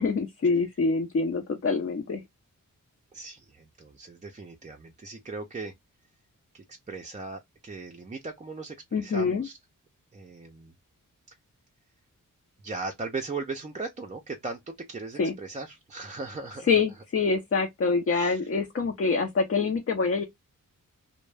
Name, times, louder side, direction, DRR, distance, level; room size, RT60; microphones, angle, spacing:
voice 1, 0.0-2.2 8.9-9.5 15.2-15.3 16.7-20.2, left 4 dB, 45° left, 0.6 m, -25 dB
voice 2, 3.1-5.7 6.5-9.6 10.1-10.7 12.6-16.8 18.1-18.4, right 3 dB, 20° right, 0.5 m, -38 dB
2.2 x 2.1 x 3.2 m
cardioid pair, 75°, 33 cm